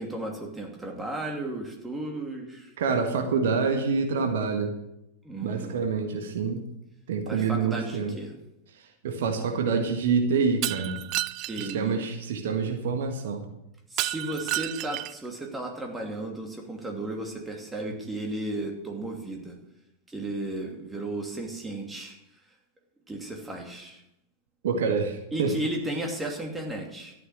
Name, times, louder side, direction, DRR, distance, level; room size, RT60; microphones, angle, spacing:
voice 1, 0.0-2.7 5.2-5.9 7.3-8.4 11.5-12.0 13.9-19.6 20.1-22.2 23.1-24.0 25.3-27.1, right 2 dB, 10° right, 1 dB, 2.7 m, -34 dB
voice 2, 2.8-4.7 5.4-6.6 7.1-8.1 9.0-11.0 11.6-13.4 24.6-25.5, right 5 dB, 60° right, 5 dB, 1.7 m, -26 dB
Shatter, 10.6-11.8 14.0-15.3, right 18 dB, 40° right, 0.4 m, -31 dB
13.0 x 9.1 x 6.5 m, 0.84 s
figure-of-eight pair, 90°, 0 cm